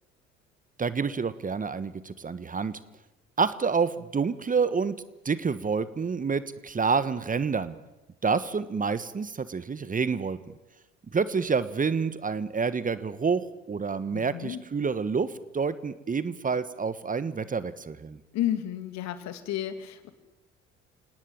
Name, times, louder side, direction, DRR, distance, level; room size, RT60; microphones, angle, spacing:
voice 1, 0.8-2.8 3.4-5.0 5.2-7.7 8.2-10.4 11.1-18.2, right 5 dB, 25° right, 15 dB, 1.4 m, -28 dB
voice 2, 14.1-14.6 18.3-20.1, left 12 dB, 55° left, 10 dB, 2.6 m, -32 dB
28.0 x 19.0 x 9.0 m, 1.0 s
figure-of-eight pair, 55°, 32 cm